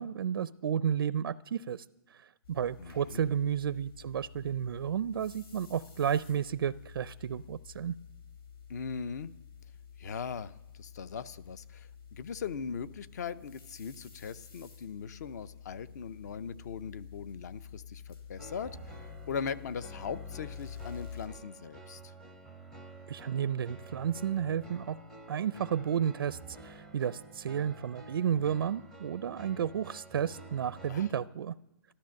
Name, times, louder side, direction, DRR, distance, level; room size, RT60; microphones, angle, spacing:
voice 1, 0.0-1.8 2.1-7.9 23.1-25.0 25.3-31.5, right 8 dB, 70° right, 16 dB, 0.4 m, -32 dB
sound 1, 2.4-21.3, left 7 dB, 75° left, 3.6 m, -50 dB
voice 2, 2.8-3.2 8.7-9.3 10.0-19.0 19.3-22.1 30.9-31.1, left 6 dB, 45° left, 16 dB, 0.6 m, -40 dB
sound 2, 18.4-31.1, right 2 dB, 5° left, 0.7 m, -50 dB
13.0 x 13.0 x 6.4 m, 0.97 s
hypercardioid pair, 165°, 13 cm